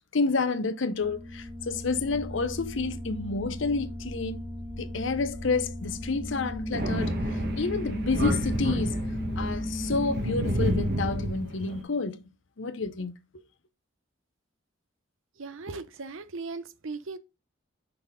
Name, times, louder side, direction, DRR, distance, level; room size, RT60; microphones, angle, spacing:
voice 1, 0.1-4.4 4.8-9.0 9.4-12.2 12.6-13.1, left 4 dB, 65° left, 0.7 m, -29 dB
sound 1, 1.0-10.2, left 1 dB, 10° left, 1.2 m, -35 dB
Thunder, 6.7-11.8, right 1 dB, 50° right, 1.2 m, -30 dB
voice 2, 15.4-17.2, right 3 dB, 75° right, 0.7 m, -38 dB
5.8 x 4.1 x 5.1 m
head